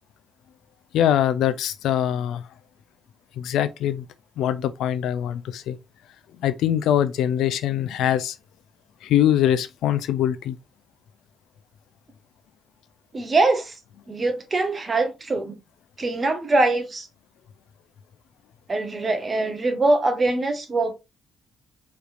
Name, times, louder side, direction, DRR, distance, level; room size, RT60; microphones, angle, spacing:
voice 1, 0.9-2.5 3.4-4.1 4.4-5.8 6.4-8.4 9.0-10.6, left 11 dB, 80° left, 0.5 m, -23 dB
voice 2, 13.1-13.7 14.1-15.6 16.0-17.1 18.7-20.9, right 2 dB, 35° right, 1.0 m, -23 dB
5.0 x 3.3 x 2.5 m
cardioid pair, 90°, 0 cm